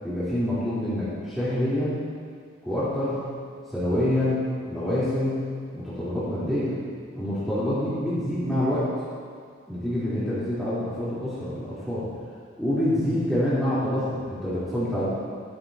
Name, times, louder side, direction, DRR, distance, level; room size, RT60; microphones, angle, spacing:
voice 1, 0.0-2.0 2.7-3.2 3.7-5.5 5.7-6.7 7.1-8.9 9.7-12.1 12.6-15.1, left 1 dB, ahead, -14 dB, 3.7 m, -26 dB
20.0 x 12.0 x 2.9 m, 2.2 s
head